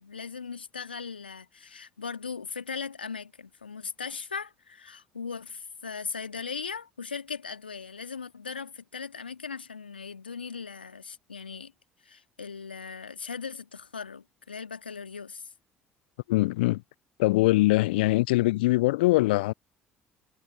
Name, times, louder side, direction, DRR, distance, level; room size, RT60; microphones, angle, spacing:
voice 1, 0.0-11.7 12.0-15.5, left 5 dB, 90° left, 1.9 m, -38 dB
voice 2, 16.3-16.8 17.2-19.5, left 19 dB, 75° left, 0.3 m, -22 dB
figure-of-eight pair, 55°, 5 cm